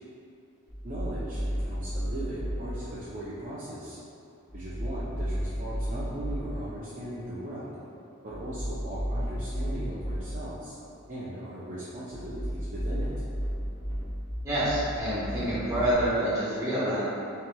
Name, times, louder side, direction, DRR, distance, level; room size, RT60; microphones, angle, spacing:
sound 1, 0.7-2.6 4.5-6.4 8.3-10.2 12.1-15.9, equal, 20° left, 0.7 m, -33 dB
voice 1, 0.8-4.0 4.5-7.7 8.2-10.7 11.1-13.1, right 1 dB, 35° right, -10 dB, 0.5 m, -38 dB
voice 2, 14.4-17.1, right 1 dB, 15° right, -11 dB, 1.3 m, -27 dB
5.8 x 2.9 x 2.2 m, 2.7 s
head